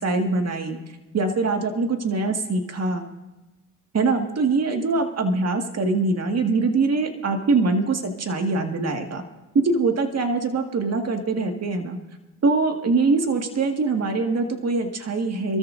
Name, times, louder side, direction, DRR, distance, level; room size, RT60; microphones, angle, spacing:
voice 1, 0.0-0.8 1.1-3.0 3.9-9.2 9.5-12.0 12.4-15.6, right 3 dB, 35° right, 4 dB, 2.0 m, -23 dB
27.5 x 13.5 x 2.7 m, 1.1 s
supercardioid pair, 75°, 44 cm